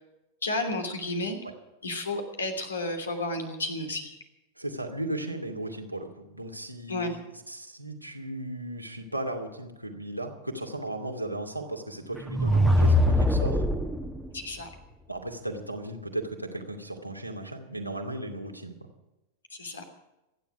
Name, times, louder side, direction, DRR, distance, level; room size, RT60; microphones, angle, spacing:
voice 1, 0.4-1.4 1.8-4.1 6.9-7.1 14.3-14.7 19.5-19.8, left 2 dB, 75° left, 5 dB, 3.0 m, -32 dB
voice 2, 4.6-13.6 15.1-18.7, right 1 dB, 90° right, 1 dB, 2.4 m, -36 dB
sound 1, 12.1-14.2, left 1 dB, 5° right, 1.4 m, -22 dB
27.0 x 10.5 x 5.0 m, 1.0 s
figure-of-eight pair, 90°, 0 cm